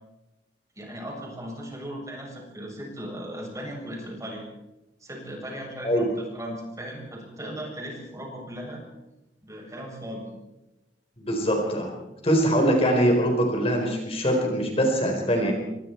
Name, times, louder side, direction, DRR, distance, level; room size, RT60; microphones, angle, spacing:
voice 1, 0.8-4.4 5.0-8.8 9.4-10.3, equal, 20° right, -1 dB, 7.8 m, -37 dB
voice 2, 11.2-11.9 12.2-15.5, equal, 35° left, 2 dB, 4.4 m, -23 dB
27.5 x 25.0 x 4.6 m, 0.98 s
head